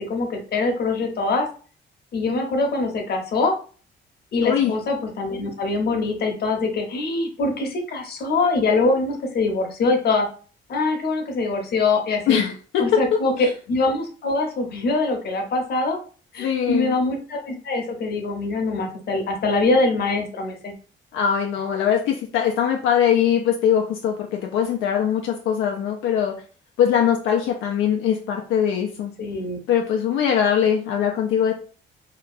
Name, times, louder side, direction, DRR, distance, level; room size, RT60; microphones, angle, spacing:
voice 1, 0.0-1.5 2.1-3.6 4.3-10.3 10.7-12.4 12.8-16.0 16.3-20.7 29.2-29.6, left 3 dB, 55° left, 3 dB, 0.8 m, -23 dB
voice 2, 4.4-4.7 12.3-12.8 16.4-17.0 21.1-26.3 26.8-29.1 29.7-31.5, left 8 dB, 85° left, 1 dB, 0.4 m, -21 dB
2.8 x 2.3 x 2.4 m, 0.39 s
cardioid pair, 90°, 20 cm